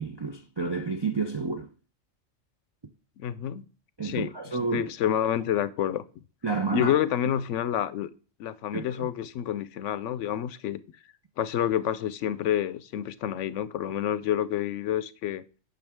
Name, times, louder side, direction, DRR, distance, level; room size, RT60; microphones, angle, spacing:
voice 1, 0.0-1.7 4.0-4.9 6.4-7.0 8.7-9.1, right 4 dB, 40° right, 0.3 m, -30 dB
voice 2, 3.2-3.7 4.0-4.3 4.7-6.0 6.7-8.1 8.4-10.8 11.4-15.4, left 10 dB, 75° left, 0.9 m, -28 dB
9.3 x 6.0 x 3.5 m
omnidirectional pair, 1.3 m